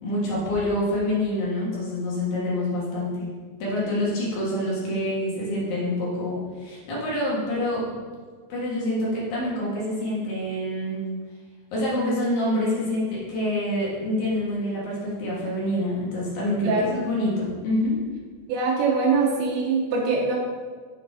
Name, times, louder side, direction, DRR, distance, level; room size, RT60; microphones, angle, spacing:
voice 1, 0.0-3.3 3.6-7.9 8.5-11.0 11.7-17.9, left 1 dB, 60° left, -6 dB, 3.2 m, -26 dB
voice 2, 16.6-17.0 18.5-20.4, right 4 dB, 90° right, -3 dB, 3.2 m, -23 dB
8.1 x 4.9 x 4.9 m, 1.5 s
omnidirectional pair, 4.9 m